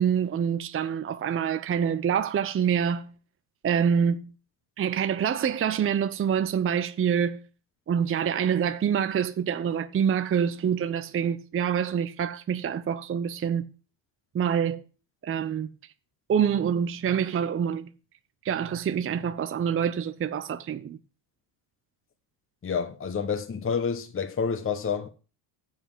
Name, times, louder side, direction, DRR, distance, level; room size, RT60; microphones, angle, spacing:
voice 1, 0.0-3.1 3.6-4.3 4.8-7.4 7.9-13.7 14.3-14.8 15.2-15.7 16.3-17.9 18.4-21.0, right 8 dB, 25° right, 0.6 m, -26 dB
voice 2, 22.6-25.1, left 6 dB, 25° left, 1.1 m, -29 dB
7.1 x 5.6 x 7.5 m
supercardioid pair, 85°, 48 cm